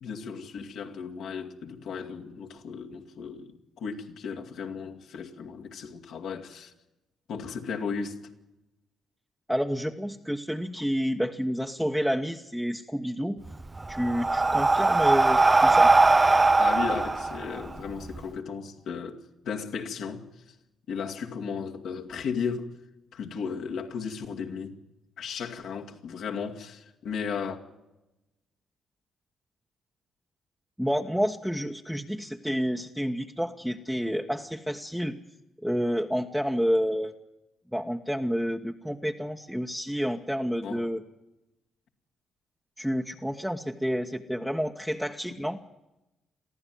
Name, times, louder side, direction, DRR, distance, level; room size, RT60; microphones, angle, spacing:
voice 1, 0.0-6.7 7.3-8.2 16.6-20.5 20.9-22.8 23.1-24.8 25.2-27.6 40.6-40.9, left 6 dB, 70° left, 2.3 m, -35 dB
voice 2, 9.5-13.4 13.9-15.9 30.8-35.2 35.6-37.1 37.7-41.0 42.8-45.6, equal, ahead, 1.3 m, -29 dB
Breathing, 13.5-18.2, right 3 dB, 25° right, 0.8 m, -21 dB
23.0 x 14.5 x 9.3 m
supercardioid pair, 60°, 0 cm